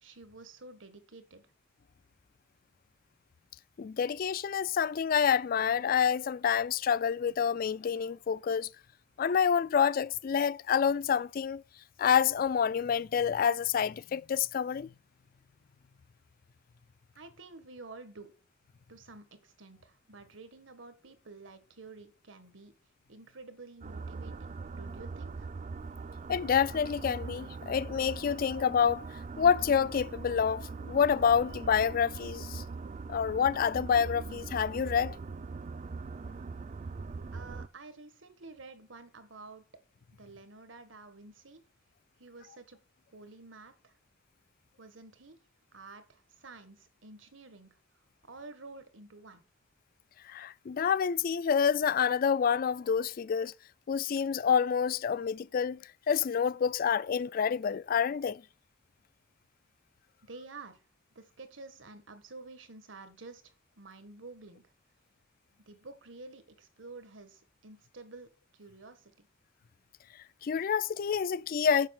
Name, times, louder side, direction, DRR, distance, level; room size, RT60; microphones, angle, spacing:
voice 1, 0.0-1.4 17.1-18.3 18.9-22.7 23.1-25.5 37.3-39.6 40.2-41.6 42.2-42.8 43.1-43.9 44.8-45.4 45.7-47.8 48.3-49.4 60.2-60.8 61.1-64.6 65.7-68.3 68.5-69.3, right 3 dB, 80° right, 1.6 m, -50 dB
voice 2, 3.8-8.7 9.2-11.6 12.0-14.9 26.3-29.0 29.4-32.6 33.1-35.2 50.2-53.5 53.9-55.8 56.1-58.4 70.4-71.9, left 7 dB, 50° left, 0.3 m, -28 dB
sound 1, 23.8-37.7, right 4 dB, 40° right, 0.4 m, -41 dB
7.3 x 5.6 x 7.0 m
head